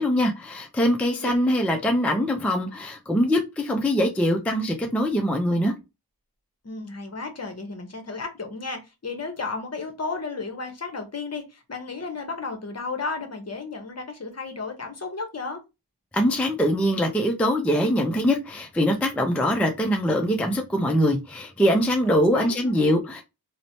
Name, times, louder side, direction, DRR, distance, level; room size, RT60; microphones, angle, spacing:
voice 1, 0.0-5.7 16.1-23.2, equal, 5° left, 0.4 m, -23 dB
voice 2, 6.6-15.6 22.0-22.8, left 4 dB, 40° left, 0.8 m, -33 dB
2.9 x 2.1 x 2.6 m
wide cardioid pair, 75°, 41 cm